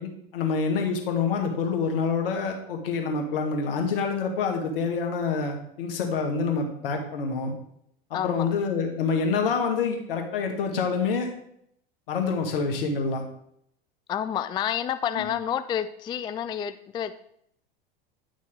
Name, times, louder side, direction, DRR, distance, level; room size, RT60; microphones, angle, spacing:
voice 1, 0.0-7.5 8.1-11.3 12.1-13.2 15.1-15.3, left 5 dB, 70° left, 3 dB, 2.0 m, -27 dB
voice 2, 8.1-8.5 14.1-17.1, left 9 dB, 15° left, 11 dB, 0.3 m, -29 dB
10.5 x 6.2 x 3.8 m, 0.72 s
hypercardioid pair, 90°, 30 cm